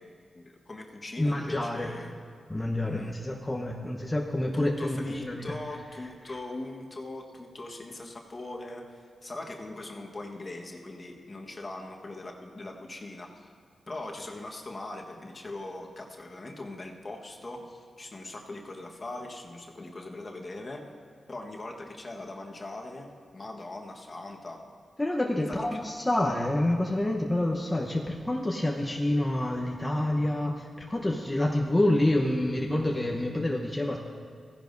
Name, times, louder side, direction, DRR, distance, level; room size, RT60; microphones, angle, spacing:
voice 1, 0.0-2.2 2.8-3.2 4.5-13.5 13.9-20.9 21.3-24.6 25.5-25.8, left 2 dB, 45° left, 1 dB, 1.3 m, -41 dB
voice 2, 1.2-1.9 2.5-5.6 6.3-6.4 25.0-34.0, left 1 dB, 20° left, -1 dB, 0.9 m, -28 dB
16.0 x 10.5 x 2.6 m, 2.1 s
cardioid pair, 45°, 0 cm